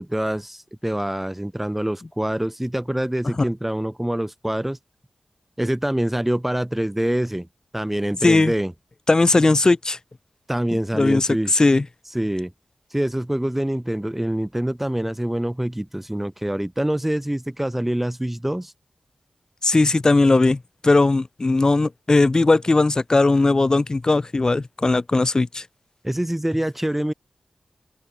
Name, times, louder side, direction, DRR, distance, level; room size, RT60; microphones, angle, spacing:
voice 1, 0.0-4.8 5.6-7.5 7.7-8.7 10.5-11.6 12.1-12.5 12.9-18.7 26.0-27.1, right 1 dB, 10° right, 0.8 m, -25 dB
voice 2, 8.2-8.5 9.1-10.0 10.9-11.8 19.6-25.6, left 3 dB, 35° left, 1.4 m, -18 dB
open air
wide cardioid pair, 85°, 2 cm